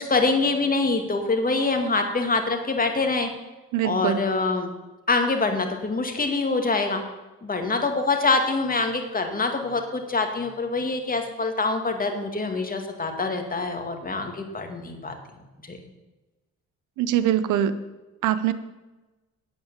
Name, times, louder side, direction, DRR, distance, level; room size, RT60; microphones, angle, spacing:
voice 1, 0.1-3.3 3.8-4.7 5.1-7.0 7.4-15.1 15.6-15.8, left 3 dB, 30° left, 4 dB, 2.0 m, -25 dB
voice 2, 3.7-4.2 17.0-17.8 18.2-18.5, right 10 dB, 90° right, 13 dB, 0.8 m, -23 dB
8.8 x 8.7 x 7.4 m, 1.1 s
cardioid pair, 90°, 30 cm